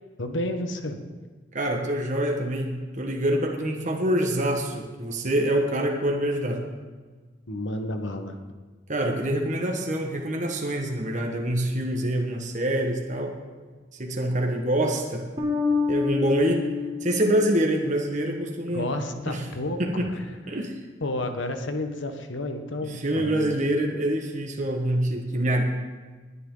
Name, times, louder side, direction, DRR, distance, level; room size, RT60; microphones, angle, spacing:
voice 1, 0.2-1.0 7.5-8.4 18.7-20.2 21.0-23.6, left 1 dB, 75° left, 6 dB, 1.2 m, -31 dB
voice 2, 1.5-6.6 8.9-13.3 14.0-15.2 15.9-16.6 17.0-18.9 19.3-19.4 19.8-20.1 20.5-20.7 22.9-25.6, right 1 dB, 40° right, 1 dB, 1.5 m, -25 dB
Bass guitar, 15.4-18.4, left 5 dB, 25° right, 3.1 m, -28 dB
20.0 x 10.0 x 3.9 m, 1.4 s
head